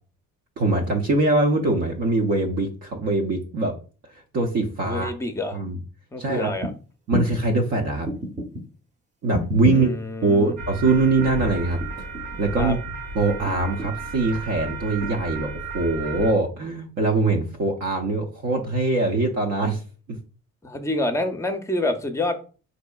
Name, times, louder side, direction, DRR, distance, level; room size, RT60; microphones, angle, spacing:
voice 1, 0.6-3.7 4.3-5.1 5.5-5.8 6.2-6.5 7.1-8.1 9.2-9.9 10.2-11.8 12.4-12.8 13.1-19.8 20.1-20.2, right 2 dB, 60° right, 1 dB, 0.6 m, -22 dB
voice 2, 4.8-5.6 6.1-6.7 9.7-10.5 12.6-12.7 20.6-22.4, left 1 dB, 10° left, 8 dB, 0.5 m, -27 dB
sound 1, 6.6-6.7 7.1-7.4 8.0-8.6 9.3-9.9 10.8-11.4 11.8-12.4 13.4-14.1 15.0-15.1, left 1 dB, 25° right, 0.7 m, -30 dB
sound 2, 10.6-16.3, right 3 dB, 80° right, 1.0 m, -34 dB
4.1 x 2.7 x 2.2 m, 0.37 s
cardioid pair, 90°, 30 cm